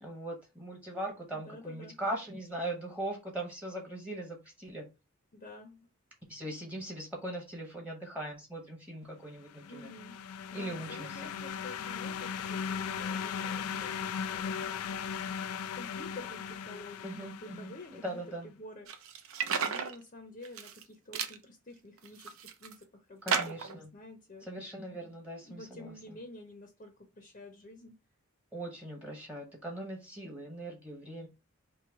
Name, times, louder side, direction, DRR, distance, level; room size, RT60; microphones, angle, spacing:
voice 1, 0.0-4.9 6.3-9.9 10.5-11.3 17.0-18.5 23.2-23.9 24.4-26.2 28.5-31.3, right 1 dB, 5° right, 0.9 m, -40 dB
voice 2, 1.3-2.0 5.3-5.9 9.7-10.2 10.5-14.9 15.7-18.9 19.6-24.5 25.4-28.0, left 2 dB, 35° left, 0.6 m, -49 dB
sound 1, 9.5-18.1, left 7 dB, 90° left, 0.3 m, -38 dB
sound 2, 18.9-19.9 20.4-20.8 21.1-21.4 22.0-22.7 23.3-23.8, right 6 dB, 75° right, 0.6 m, -33 dB
3.1 x 2.8 x 4.5 m
head